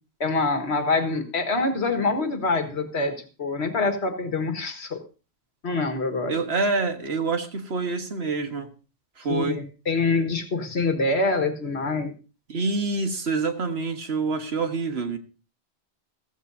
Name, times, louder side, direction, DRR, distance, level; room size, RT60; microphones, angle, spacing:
voice 1, 0.2-5.0 5.6-6.4 9.3-12.1, left 3 dB, 75° left, 6 dB, 1.9 m, -25 dB
voice 2, 6.3-8.7 9.2-9.6 12.5-15.2, right 4 dB, 75° right, 6 dB, 1.7 m, -26 dB
15.0 x 15.0 x 2.7 m, 0.33 s
omnidirectional pair, 1.1 m